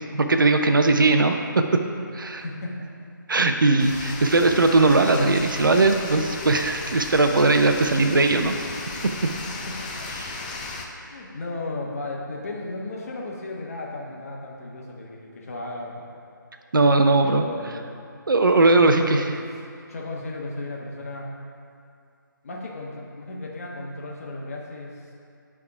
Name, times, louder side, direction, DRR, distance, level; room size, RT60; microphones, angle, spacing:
voice 1, 0.1-1.6 2.1-2.4 3.3-8.6 10.2-10.3 16.7-17.5 18.3-19.2, right 3 dB, 75° right, 6 dB, 0.7 m, -19 dB
voice 2, 2.3-2.9 9.5-10.1 10.8-16.1 17.2-18.0 18.7-19.3 19.9-21.3 22.4-25.1, left 2 dB, 45° left, -2 dB, 1.2 m, -35 dB
sound 1, 3.8-10.9, left 3 dB, 25° left, 0.5 m, -35 dB
9.4 x 3.6 x 4.8 m, 2.4 s
figure-of-eight pair, 155°, 11 cm